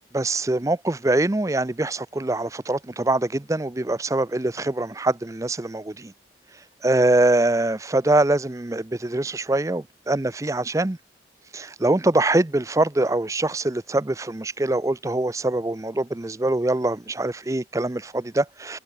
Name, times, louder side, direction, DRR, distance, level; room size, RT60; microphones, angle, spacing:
voice 1, 0.1-6.1 6.8-11.0 11.5-18.8, right 2 dB, 15° right, 0.5 m, -23 dB
head